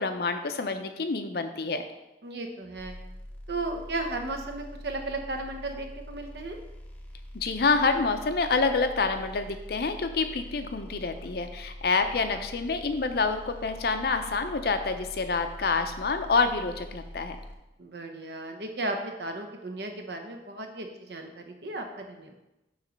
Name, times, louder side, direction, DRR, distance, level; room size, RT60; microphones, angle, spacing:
voice 1, 0.0-1.8 7.3-17.4, left 4 dB, 60° left, 8 dB, 0.5 m, -27 dB
voice 2, 2.2-2.9 3.5-6.6 17.8-22.3, right 2 dB, 65° right, 4 dB, 0.8 m, -35 dB
sound 1, 2.8-17.5, equal, 10° left, 0.7 m, -44 dB
7.3 x 3.2 x 5.2 m, 0.98 s
head